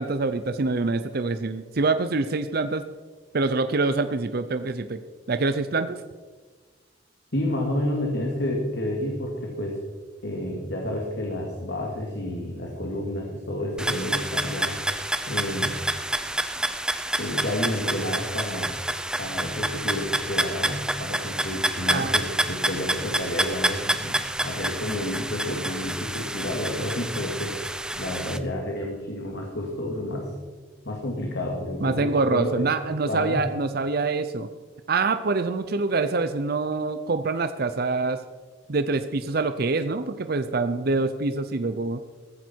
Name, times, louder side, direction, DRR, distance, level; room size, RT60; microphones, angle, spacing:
voice 1, 0.0-2.8 3.3-5.0 5.3-6.0 21.9-22.1 31.8-34.5 34.9-38.2 38.7-42.0, right 3 dB, 55° right, 10 dB, 0.6 m, -25 dB
voice 2, 7.3-9.8 10.2-14.8 15.3-15.8 17.2-18.8 19.2-27.6 27.9-30.3 30.8-32.7 33.1-33.5, left 1 dB, 65° left, 0 dB, 2.4 m, -30 dB
sound 1, 13.8-28.4, right 1 dB, 5° right, 0.7 m, -28 dB
15.0 x 14.5 x 4.6 m, 1.4 s
head